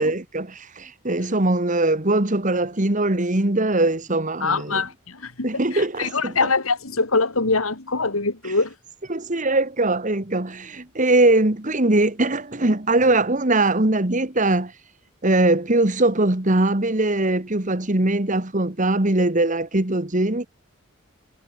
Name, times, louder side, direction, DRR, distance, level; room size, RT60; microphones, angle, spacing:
voice 1, 0.0-4.8 5.4-6.3 9.1-14.7 15.2-20.5, right 2 dB, 35° right, 1.8 m, -21 dB
voice 2, 4.4-8.7, left 3 dB, 90° left, 3.0 m, -24 dB
head